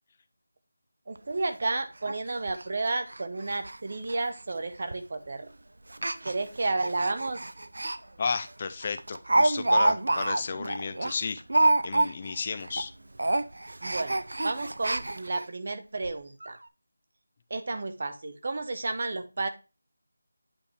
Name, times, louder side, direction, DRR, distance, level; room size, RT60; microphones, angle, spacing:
voice 1, 1.1-5.5 6.2-7.4 13.8-16.6 17.5-19.5, right 3 dB, 35° right, 9 dB, 0.6 m, -32 dB
Speech, 1.2-1.3 1.6-1.7 2.1-2.2 2.5-2.6 3.1-3.2 3.5-3.8 4.0-4.1 4.9-5.1 5.9-8.0 8.3-8.5 8.8-12.4 12.6-12.9 13.2-15.4 16.0-16.1 16.4-16.5, right 2 dB, 75° right, 0.5 m, -27 dB
voice 2, 8.2-11.4 11.8-12.9, left 5 dB, 20° left, 10 dB, 0.4 m, -33 dB
8.7 x 3.3 x 4.3 m, 0.29 s
figure-of-eight pair, 180°, 0 cm